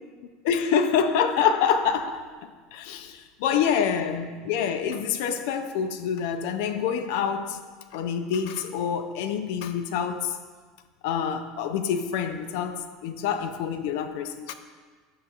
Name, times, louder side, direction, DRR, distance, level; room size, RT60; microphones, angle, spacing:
voice 1, 0.2-7.6 7.9-10.3 11.0-14.5, left 7 dB, 60° left, 0.5 m, -26 dB
9.9 x 6.6 x 2.5 m
figure-of-eight pair, 75°, 0 cm